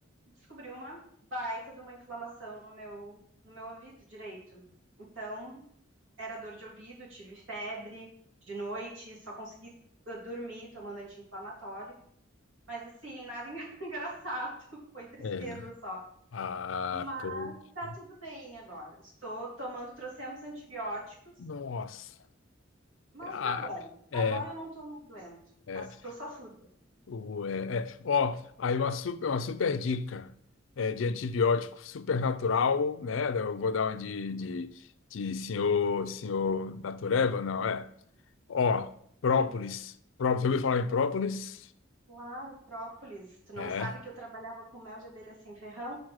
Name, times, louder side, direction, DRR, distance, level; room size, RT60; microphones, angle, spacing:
voice 1, 0.5-4.6 5.0-5.6 6.2-8.1 8.5-9.7 10.1-11.9 12.7-16.0 16.9-21.3 23.1-25.4 25.7-26.5 39.3-39.5 42.1-46.0, right 1 dB, 80° right, 3.4 m, -41 dB
voice 2, 15.2-15.6 16.3-17.5 21.4-22.1 23.2-23.7 24.1-24.4 25.7-25.9 27.1-30.3 30.8-34.7 35.1-37.9 38.5-38.9 39.2-39.9 40.2-41.7 43.6-43.9, left 5 dB, 70° left, 0.5 m, -30 dB
6.1 x 4.2 x 6.4 m
head